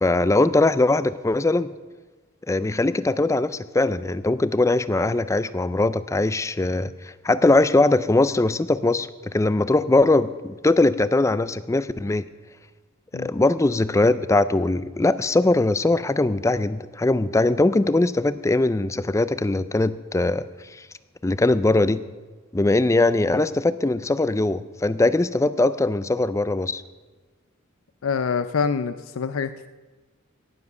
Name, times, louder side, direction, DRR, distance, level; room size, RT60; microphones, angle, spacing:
voice 1, 0.0-1.7 2.5-12.2 13.1-20.5 21.2-22.0 22.5-26.8, left 2 dB, 15° left, 15 dB, 0.4 m, -21 dB
voice 2, 28.0-29.7, left 5 dB, 75° left, 12 dB, 0.5 m, -25 dB
18.0 x 7.3 x 6.7 m, 1.3 s
head